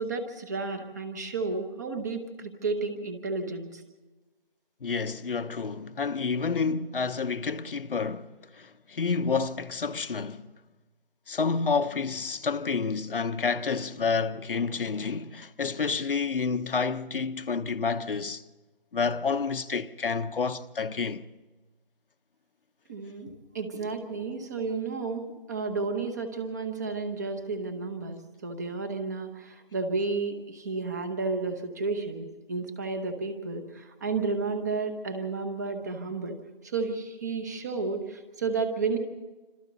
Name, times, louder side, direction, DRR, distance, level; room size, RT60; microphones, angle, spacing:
voice 1, 0.0-3.8 22.9-36.4 36.6-39.0, right 4 dB, 20° right, 1.0 m, -32 dB
voice 2, 4.8-10.4 11.3-18.4 18.9-21.2, left 5 dB, 65° left, 1.1 m, -29 dB
27.0 x 26.5 x 4.1 m
hypercardioid pair, 170°, 29 cm